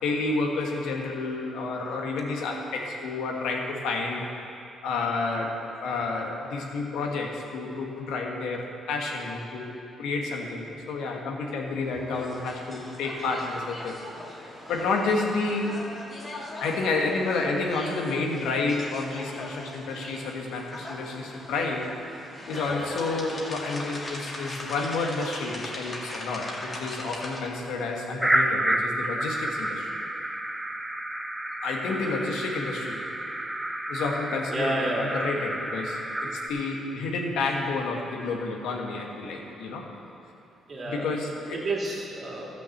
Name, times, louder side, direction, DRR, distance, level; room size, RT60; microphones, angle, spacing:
voice 1, 0.0-4.3 4.8-14.0 14.7-15.8 16.6-21.9 22.5-29.9 31.6-33.0 33.9-39.9 40.8-41.6, left 3 dB, 85° left, 0 dB, 1.6 m, -30 dB
sound 1, 12.1-27.4, left 1 dB, 30° left, 2.0 m, -40 dB
voice 2, 14.3-14.7 16.2-16.6 19.6-19.7 21.2-21.5 22.3-22.5 32.0-32.1 34.5-35.2 40.7-41.1 41.5-42.5, right 2 dB, 40° right, -2 dB, 2.6 m, -32 dB
sound 2, 28.2-36.5, right 1 dB, 10° right, 0.8 m, -30 dB
13.0 x 6.2 x 7.2 m, 2.7 s
cardioid pair, 90°, 0 cm